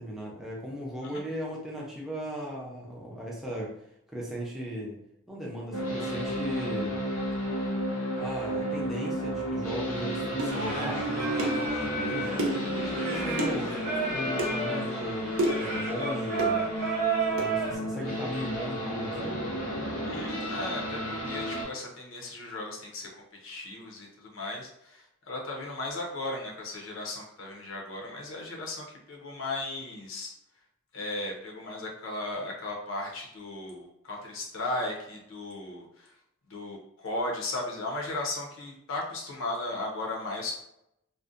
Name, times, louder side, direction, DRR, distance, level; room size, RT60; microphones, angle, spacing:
voice 1, 0.0-3.7 4.1-5.0 5.3-7.0 8.2-16.6 17.3-19.4, equal, ahead, -4 dB, 0.5 m, -37 dB
sound 1, 5.7-21.6, equal, 85° left, 1.0 m, -32 dB
sound 2, 10.4-10.6 11.4-11.6 12.4-12.7 13.4-13.6 14.4-14.5 15.4-15.7 16.4-16.6 17.4-17.5, right 1 dB, 75° right, 0.6 m, -29 dB
Singing, 10.5-17.7, right 3 dB, 35° right, 0.7 m, -32 dB
voice 2, 20.0-23.1 23.4-30.3 30.9-36.1 36.4-40.6, left 2 dB, 70° left, 0 dB, 0.6 m, -36 dB
2.5 x 2.1 x 2.4 m, 0.78 s
head